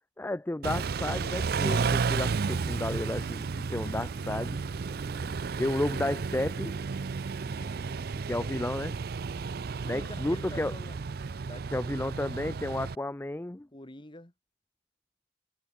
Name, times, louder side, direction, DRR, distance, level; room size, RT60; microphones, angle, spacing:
voice 1, 0.2-4.6 5.6-6.7 8.3-9.0 9.8-10.7 11.7-13.7, left 1 dB, 10° left, 0.4 m, -32 dB
Car / Idling / Accelerating revving vroom, 0.6-13.0, right 5 dB, 55° right, 0.5 m, -32 dB
Bowed string instrument, 2.5-6.6, equal, 5° right, 4.0 m, -55 dB
voice 2, 4.7-5.3 7.3-8.6 9.9-11.0 11.5-12.2 13.7-14.3, left 1 dB, 25° left, 1.9 m, -49 dB
head